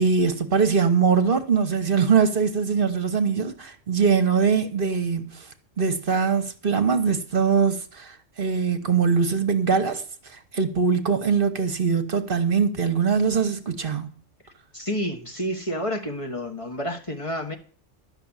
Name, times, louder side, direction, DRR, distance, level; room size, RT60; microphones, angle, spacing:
voice 1, 0.0-5.4 5.8-10.0 10.3-14.1, right 5 dB, 45° right, 1.3 m, -22 dB
voice 2, 14.7-17.6, equal, 25° left, 1.6 m, -29 dB
12.5 x 6.2 x 8.9 m
omnidirectional pair, 1.3 m